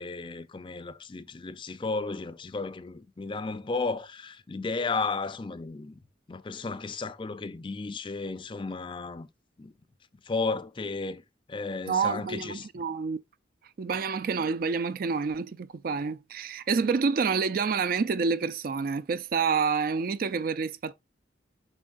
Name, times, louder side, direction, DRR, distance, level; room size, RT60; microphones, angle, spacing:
voice 1, 0.0-6.0 6.3-9.3 9.6-9.7 10.3-11.2 11.5-12.7, left 3 dB, 30° left, 0.4 m, -33 dB
voice 2, 11.9-13.2 13.8-20.9, right 5 dB, 50° right, 0.4 m, -28 dB
7.2 x 5.4 x 2.4 m
head